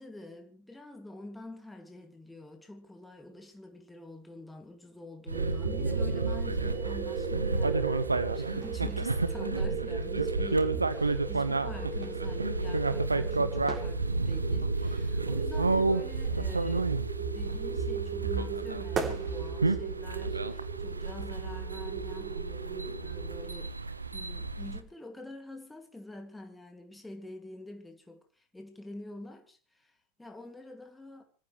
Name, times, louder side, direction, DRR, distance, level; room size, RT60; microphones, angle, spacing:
voice 1, 0.0-23.8 24.1-31.2, left 1 dB, 5° left, 2.3 m, -47 dB
sound 1, 3.4-3.9 4.8-5.3 5.7-6.9 7.3-7.4 7.7-10.8 11.5-12.2 12.5-12.6 12.9-13.2 13.7-18.6 18.9-21.5 21.8-21.9, right 5 dB, 25° right, 3.1 m, -44 dB
sound 2, 5.3-23.6, right 5 dB, 50° right, 4.3 m, -37 dB
sound 3, 5.3-24.8, right 3 dB, 80° right, 1.0 m, -31 dB
27.0 x 14.5 x 3.2 m
figure-of-eight pair, 90°, 0 cm